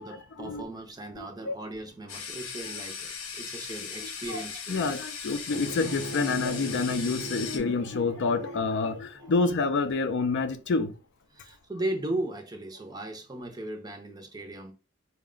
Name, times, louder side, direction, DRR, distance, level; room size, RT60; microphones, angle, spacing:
voice 1, 0.0-4.8 9.2-9.5 11.3-14.7, right 1 dB, 20° right, 0.6 m, -37 dB
voice 2, 1.2-1.5 4.3-4.4 4.7-10.9, left 4 dB, 60° left, 0.5 m, -28 dB
sound 1, 2.1-7.6, left 6 dB, 90° left, 0.7 m, -38 dB
Bowed string instrument, 5.5-10.6, right 2 dB, 70° right, 0.6 m, -41 dB
4.1 x 2.1 x 3.7 m
head